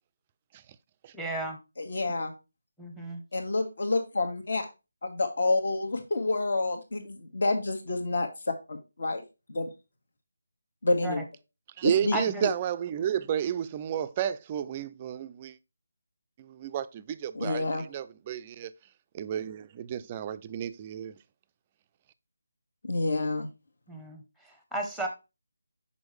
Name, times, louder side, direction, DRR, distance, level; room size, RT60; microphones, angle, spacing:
voice 1, 1.1-1.6 2.8-3.2 11.0-11.2 12.1-12.5 23.9-25.1, right 2 dB, ahead, 0.7 m, -34 dB
voice 2, 1.8-2.3 3.3-4.7 5.0-8.3 8.7-9.2 9.5-9.7 10.8-11.2 11.8-12.2 17.3-17.8 22.8-23.5, left 2 dB, 65° left, 1.5 m, -28 dB
voice 3, 11.8-15.6 16.4-18.7 19.1-21.1, right 9 dB, 20° right, 0.3 m, -32 dB
6.2 x 5.5 x 3.2 m
figure-of-eight pair, 165°, 0 cm